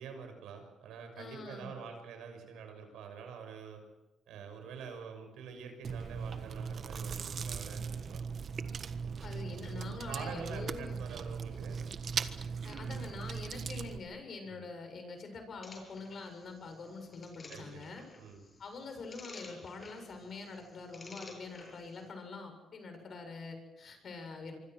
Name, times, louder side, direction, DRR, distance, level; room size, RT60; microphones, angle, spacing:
voice 1, 0.0-3.8 4.3-8.2 10.1-11.8 14.5-14.6 17.5-17.9 18.1-18.4, right 6 dB, 85° right, 5 dB, 6.4 m, -46 dB
voice 2, 1.2-1.7 9.2-11.1 12.6-18.0 18.6-24.6, left 3 dB, 50° left, 6 dB, 7.3 m, -45 dB
Chewing mastication, 5.8-14.0, right 6 dB, 50° right, 1.5 m, -39 dB
Frog Croak, 15.6-22.1, left 3 dB, 35° left, 7.7 m, -53 dB
26.0 x 25.0 x 6.3 m, 0.95 s
cardioid pair, 90°, 0 cm